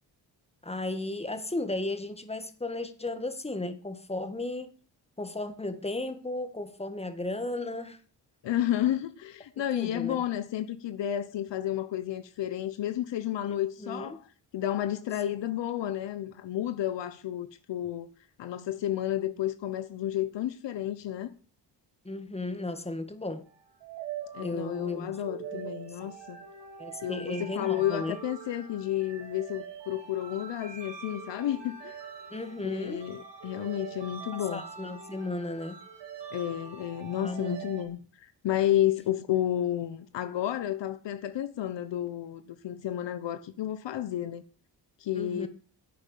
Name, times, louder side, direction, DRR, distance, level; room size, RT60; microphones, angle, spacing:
voice 1, 0.6-4.7 5.2-8.0 9.7-10.2 13.8-14.2 22.0-23.4 24.4-25.1 25.5-25.7 26.8-28.2 32.3-33.0 34.5-35.8 37.2-37.7 45.1-45.5, left 2 dB, 15° left, 2.1 m, -35 dB
voice 2, 8.4-14.3 14.5-18.1 18.4-21.3 24.3-26.4 27.0-31.9 32.6-34.6 36.3-44.4 45.0-45.5, left 12 dB, 80° left, 1.1 m, -31 dB
sound 1, 23.5-37.8, right 6 dB, 80° right, 3.5 m, -44 dB
11.0 x 8.5 x 8.4 m
cardioid pair, 70°, 43 cm